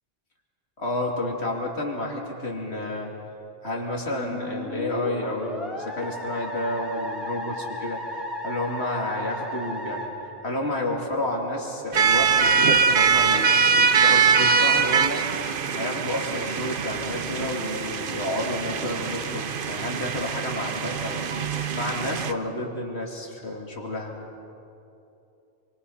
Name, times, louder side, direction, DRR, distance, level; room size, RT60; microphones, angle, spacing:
voice 1, 0.8-3.1 3.6-8.0 8.4-10.1 10.4-15.3 15.7-21.3 21.7-24.1, left 1 dB, 70° left, 0 dB, 2.9 m, -30 dB
Musical instrument, 4.1-11.0, equal, ahead, 3.7 m, -35 dB
sound 1, 11.9-22.3, right 6 dB, 55° right, 0.9 m, -23 dB
27.0 x 24.0 x 5.7 m, 2.7 s
omnidirectional pair, 1.1 m